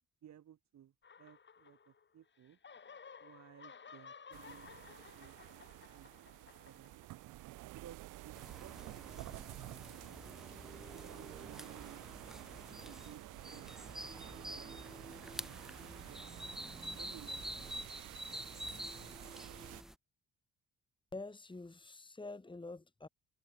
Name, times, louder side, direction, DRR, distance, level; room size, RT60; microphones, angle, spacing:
voice 1, 0.2-2.6 3.2-5.4 5.9-6.1 6.6-7.4 7.7-9.5 9.9-10.1 10.6-12.3 12.8-13.7 14.5-15.2 16.1-16.3 16.9-17.7, right 10 dB, 65° right, 2.8 m, -58 dB
sound 1, 1.0-2.2 2.4-7.4, left 6 dB, 40° left, 3.2 m, -56 dB
sound 2, 4.3-19.8, right 18 dB, 90° right, 0.8 m, -51 dB
sound 3, 8.3-19.9, equal, ahead, 0.4 m, -48 dB
voice 2, 21.1-23.1, left 3 dB, 15° left, 3.0 m, -47 dB
cardioid pair, 90°, 30 cm